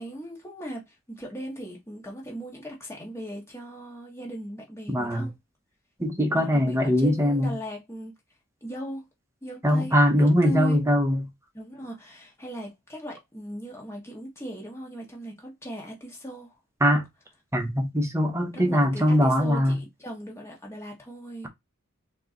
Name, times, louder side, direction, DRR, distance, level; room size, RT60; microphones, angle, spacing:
voice 1, 0.0-5.3 6.3-8.1 8.6-9.1 9.4-9.9 10.2-10.8 11.5-16.5 18.5-21.5, equal, 15° left, 1.6 m, -38 dB
voice 2, 4.9-5.3 6.0-7.5 9.6-11.3 16.8-17.0 17.5-19.8, equal, 15° right, 1.0 m, -22 dB
4.6 x 3.0 x 3.9 m
head